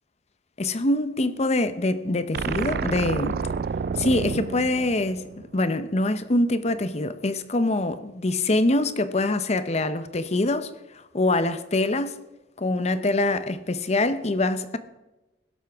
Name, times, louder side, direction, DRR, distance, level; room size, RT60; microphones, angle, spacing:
voice 1, 0.6-3.4 4.0-5.3 5.5-12.2 12.6-14.8, left 2 dB, 40° left, 0.8 m, -24 dB
sound 1, 2.3-5.7, right 5 dB, 60° right, 0.4 m, -29 dB
16.5 x 12.5 x 3.6 m
head